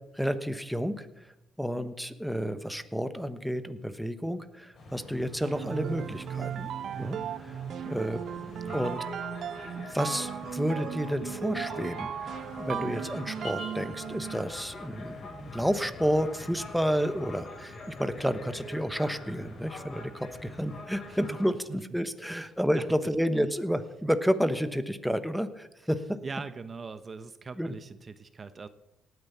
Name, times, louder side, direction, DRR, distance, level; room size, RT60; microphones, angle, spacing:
voice 1, 0.1-1.1 1.6-6.7 7.0-7.5 7.8-8.2 8.7-9.1 9.6-26.2 27.6-27.8, equal, ahead, 10 dB, 1.2 m, -30 dB
sound 1, 4.7-21.5, left 2 dB, 50° left, 5.2 m, -44 dB
sound 2, 5.4-14.6, right 9 dB, 65° right, 0.5 m, -36 dB
voice 2, 22.3-22.9 23.4-23.5 26.2-28.7, right 4 dB, 35° right, 12 dB, 0.9 m, -42 dB
18.0 x 9.5 x 6.9 m, 0.93 s
cardioid pair, 85°, 0 cm